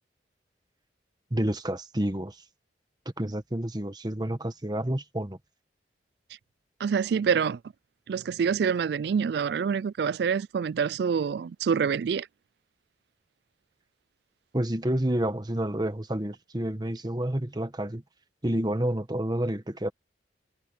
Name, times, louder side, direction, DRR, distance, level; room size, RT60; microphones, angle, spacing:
voice 1, 1.3-2.4 3.2-5.4 14.5-18.0 18.4-19.9, right 1 dB, 20° right, 1.3 m, -29 dB
voice 2, 6.8-7.6 8.1-12.3, right 6 dB, 60° right, 0.3 m, -26 dB
head